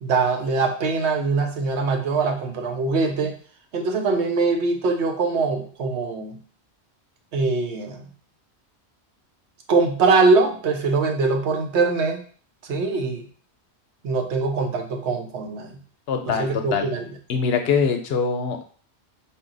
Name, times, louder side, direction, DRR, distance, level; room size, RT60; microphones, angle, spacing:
voice 1, 0.0-3.3 3.7-6.4 7.3-8.1 9.7-12.2 12.7-13.3 14.0-15.7 16.4-17.0, right 4 dB, 85° right, 4 dB, 1.0 m, -22 dB
voice 2, 16.1-16.9 17.3-18.6, left 6 dB, 70° left, 6 dB, 0.8 m, -23 dB
4.2 x 2.2 x 3.8 m, 0.43 s
omnidirectional pair, 1.1 m